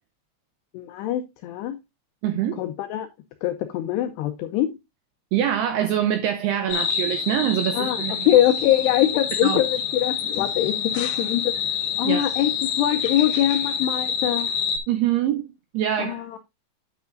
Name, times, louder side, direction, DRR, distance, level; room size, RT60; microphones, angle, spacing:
voice 1, 0.7-1.8 2.6-3.1 3.4-4.7 7.7-11.5 12.0-14.5 16.0-16.4, left 12 dB, 85° left, 2.4 m, -23 dB
voice 2, 2.2-2.6 5.3-8.3 9.4-9.6 12.0-12.2 14.9-16.4, right 11 dB, 85° right, 2.3 m, -24 dB
sound 1, 6.7-14.8, left 7 dB, 70° left, 3.5 m, -27 dB
9.7 x 8.2 x 2.5 m
omnidirectional pair, 5.6 m